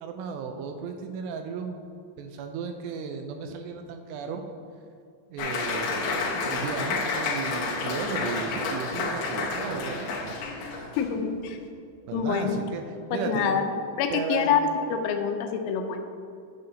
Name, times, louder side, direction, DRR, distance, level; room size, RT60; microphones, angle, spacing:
voice 1, 0.0-1.8 2.2-4.4 5.3-10.3 12.1-13.5 14.1-14.5, right 5 dB, 85° right, 5 dB, 2.5 m, -34 dB
Applause, 5.4-11.1, left 3 dB, 70° left, 2.3 m, -30 dB
voice 2, 11.0-11.6 12.1-12.6 13.3-13.6 14.0-14.6 14.9-16.0, left 7 dB, 85° left, 5 dB, 3.0 m, -26 dB
10.0 x 6.6 x 2.7 m, 2.3 s
omnidirectional pair, 5.2 m